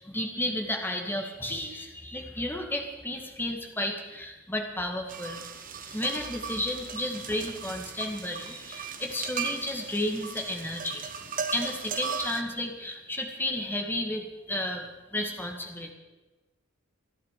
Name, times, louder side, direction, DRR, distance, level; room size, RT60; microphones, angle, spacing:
voice 1, 0.0-5.4 5.8-11.1 11.5-15.9, left 1 dB, 10° left, 3 dB, 2.1 m, -32 dB
sound 1, 5.1-12.4, right 6 dB, 40° right, 1.2 m, -37 dB
27.5 x 10.0 x 5.0 m, 1.2 s
head